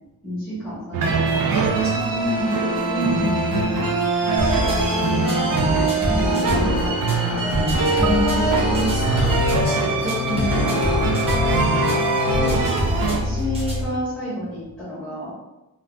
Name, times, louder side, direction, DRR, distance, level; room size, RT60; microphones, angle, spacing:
voice 1, 0.2-1.6 5.9-6.9 8.0-8.1 11.9-12.0 12.3-15.3, equal, 5° left, -12 dB, 1.1 m, -31 dB
sound 1, 0.9-13.2, right 5 dB, 70° right, 0.5 m, -23 dB
voice 2, 1.8-3.7 6.2-11.1, equal, 35° right, -9 dB, 1.4 m, -29 dB
sound 2, 2.2-13.3, left 5 dB, 60° left, 0.5 m, -28 dB
sound 3, 4.4-14.0, equal, 15° right, 0.8 m, -25 dB
3.6 x 2.4 x 2.2 m, 0.98 s
wide cardioid pair, 175°, 35 cm